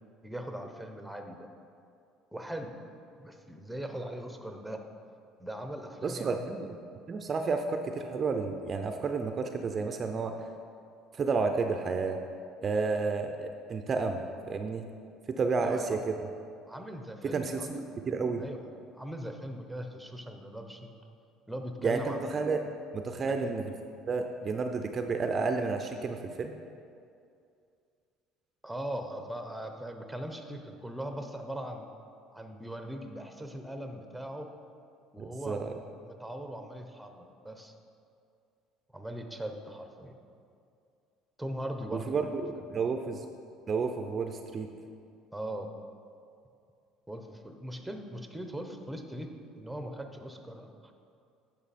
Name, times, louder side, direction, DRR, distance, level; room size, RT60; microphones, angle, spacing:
voice 1, 0.2-1.4 2.3-2.7 3.2-4.8 5.4-6.5 15.6-16.0 16.7-17.8 18.4-20.9 21.5-22.3 23.2-23.5 28.6-31.9 32.3-34.5 35.1-35.7 36.0-37.7 38.9-40.1 41.4-42.3 42.5-42.9 45.3-45.7 47.1-49.3 49.5-50.9, right 1 dB, ahead, 5 dB, 0.8 m, -40 dB
voice 2, 6.0-6.7 7.1-10.5 11.1-12.2 12.6-14.9 15.3-16.0 17.2-18.4 21.8-22.6 22.9-23.6 24.1-26.5 35.2-35.7 41.9-42.4 42.7-43.2 43.7-44.7, right 4 dB, 35° right, 6 dB, 0.5 m, -31 dB
9.4 x 6.0 x 4.2 m, 2.4 s
supercardioid pair, 105°, 0 cm